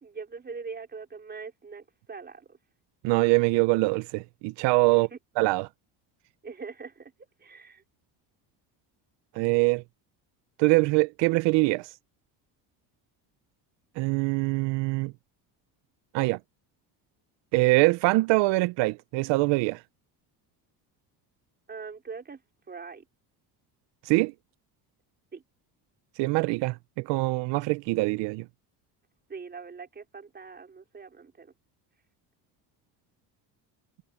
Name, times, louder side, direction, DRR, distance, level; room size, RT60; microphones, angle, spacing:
voice 1, 0.0-2.6 5.1-5.2 6.4-7.1 7.4-7.8 21.7-22.4 22.7-23.0 25.3-25.4 29.3-31.5, right 5 dB, 25° right, 4.0 m, -42 dB
voice 2, 3.0-5.1 5.4-5.7 9.4-9.8 10.6-11.9 14.0-15.1 16.1-16.4 17.5-19.8 24.0-24.3 26.2-28.4, right 23 dB, 85° right, 0.6 m, -24 dB
cardioid pair, 140°, 42 cm